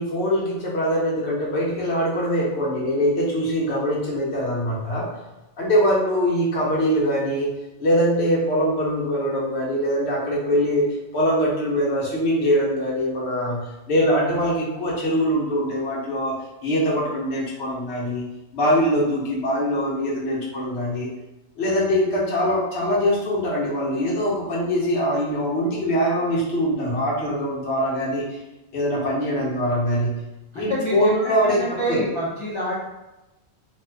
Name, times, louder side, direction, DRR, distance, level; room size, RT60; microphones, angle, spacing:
voice 1, 0.0-5.1 5.6-7.5 7.8-10.8 11.1-16.4 16.6-18.2 18.5-21.1 21.6-28.4 28.7-30.1 30.5-31.6 31.9-32.0, equal, 80° left, -4 dB, 1.2 m, -23 dB
voice 2, 30.5-32.7, equal, 40° left, -8 dB, 0.5 m, -27 dB
2.6 x 2.3 x 3.3 m, 1.0 s
omnidirectional pair, 1.1 m